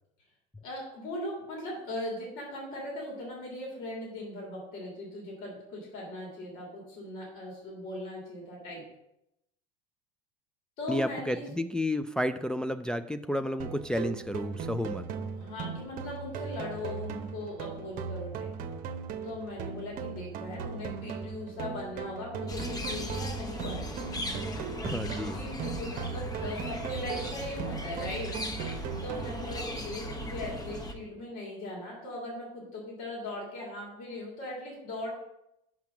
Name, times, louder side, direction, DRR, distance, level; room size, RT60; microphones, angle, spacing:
voice 1, 0.6-8.8 10.8-11.4 15.4-18.5 19.2-24.0 25.3-28.3 29.0-35.1, left 1 dB, 65° left, -3 dB, 3.2 m, -39 dB
voice 2, 10.9-15.0 24.8-25.4, left 1 dB, 5° left, 8 dB, 0.3 m, -31 dB
sound 1, 13.6-29.6, right 6 dB, 55° right, 0.8 m, -38 dB
sound 2, 22.5-30.9, equal, 20° left, 1.2 m, -38 dB
6.0 x 5.7 x 5.9 m, 0.84 s
hypercardioid pair, 85°, 17 cm